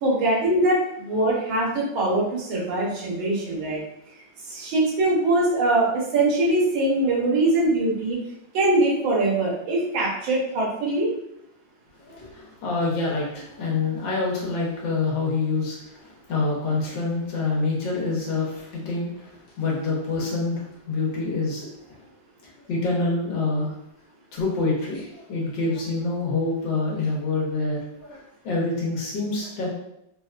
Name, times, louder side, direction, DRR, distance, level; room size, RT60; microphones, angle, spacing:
voice 1, 0.0-3.8 4.5-8.2 8.5-11.1, right 2 dB, 90° right, -4 dB, 1.7 m, -22 dB
voice 2, 12.0-22.1 22.6-23.7 24.3-29.7, left 3 dB, 75° left, -4 dB, 1.6 m, -27 dB
4.0 x 2.1 x 2.4 m, 0.78 s
omnidirectional pair, 2.2 m